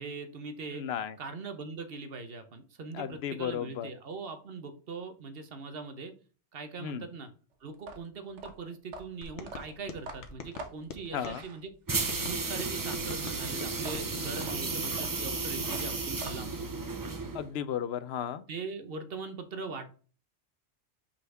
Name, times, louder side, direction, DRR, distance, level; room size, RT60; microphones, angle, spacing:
voice 1, 0.0-0.9 1.2-6.1 6.5-7.3 7.6-11.7 12.2-16.5 18.5-19.9, right 4 dB, 60° right, 8 dB, 1.1 m, -41 dB
voice 2, 0.7-1.2 2.9-3.9 6.8-7.1 11.1-11.4 17.3-18.4, left 9 dB, 70° left, 13 dB, 0.8 m, -34 dB
sound 1, 7.7-12.1 13.7-16.7, right 2 dB, 85° right, 1.2 m, -45 dB
sound 2, 9.2-11.4 11.9-14.1, left 4 dB, 90° left, 1.3 m, -45 dB
sound 3, 11.9-17.5, right 3 dB, 30° right, 0.4 m, -33 dB
5.4 x 4.3 x 4.6 m, 0.39 s
omnidirectional pair, 1.2 m